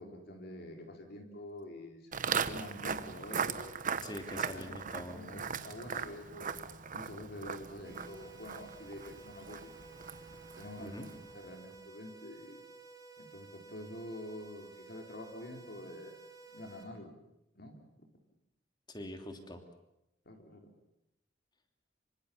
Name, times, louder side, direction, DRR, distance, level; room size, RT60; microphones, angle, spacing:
voice 1, 0.0-3.7 4.5-6.7 6.9-9.7 10.6-12.6 13.2-16.2 16.5-17.2 17.6-18.1 20.3-20.8, left 1 dB, 60° left, 3 dB, 4.0 m, -47 dB
Walk footsteps, 2.1-11.3, right 6 dB, 45° right, 1.1 m, -39 dB
voice 2, 4.0-5.2 10.8-11.1 18.9-19.6, left 1 dB, 25° left, 5 dB, 3.0 m, -44 dB
sound 1, 7.8-16.8, right 4 dB, 20° right, 5.2 m, -54 dB
26.0 x 24.5 x 7.1 m, 0.88 s
head